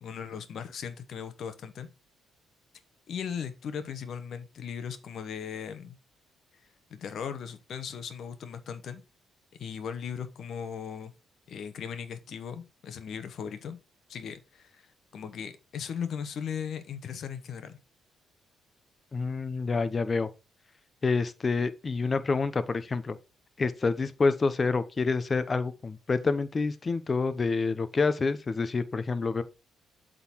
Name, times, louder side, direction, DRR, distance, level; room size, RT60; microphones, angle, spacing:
voice 1, 0.0-1.9 3.1-6.0 6.9-9.0 9.6-11.1 11.5-13.8 14.1-17.8, left 7 dB, 65° left, 1.0 m, -38 dB
voice 2, 19.1-20.3 21.0-23.2 23.6-29.4, left 4 dB, 35° left, 0.8 m, -27 dB
7.9 x 3.9 x 4.5 m
cardioid pair, 90°, 0 cm